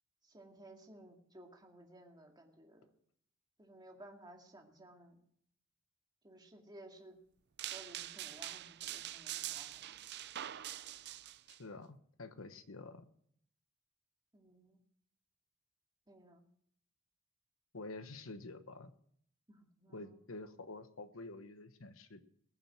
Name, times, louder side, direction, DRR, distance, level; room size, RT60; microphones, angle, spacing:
voice 1, 0.2-2.9 3.6-5.2 6.2-7.2 7.7-9.9 14.3-14.8 16.1-16.4 19.5-20.2, right 1 dB, 20° right, 1 dB, 2.2 m, -57 dB
sound 1, 7.6-11.6, right 13 dB, 55° right, 0.5 m, -44 dB
voice 2, 11.5-13.1 17.7-18.9 19.9-22.2, left 2 dB, 85° left, 10 dB, 1.2 m, -48 dB
20.0 x 7.5 x 6.0 m, 0.66 s
head